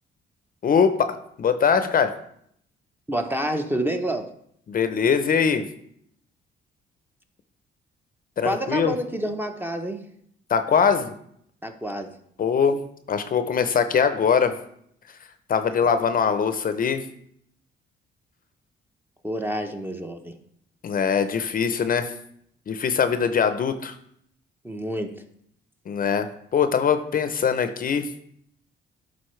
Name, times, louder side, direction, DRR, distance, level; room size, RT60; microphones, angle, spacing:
voice 1, 0.6-2.1 4.7-5.7 8.4-8.9 10.5-11.1 12.4-12.8 13.1-14.5 15.5-17.0 20.8-22.1 22.7-24.0 25.9-26.3 26.5-28.1, left 6 dB, 45° left, 10 dB, 0.6 m, -22 dB
voice 2, 3.1-4.3 8.4-10.0 11.6-12.1 19.2-20.4 24.6-25.1, right 1 dB, 10° right, 6 dB, 0.7 m, -28 dB
11.0 x 4.1 x 3.2 m, 0.68 s
cardioid pair, 90°, 20 cm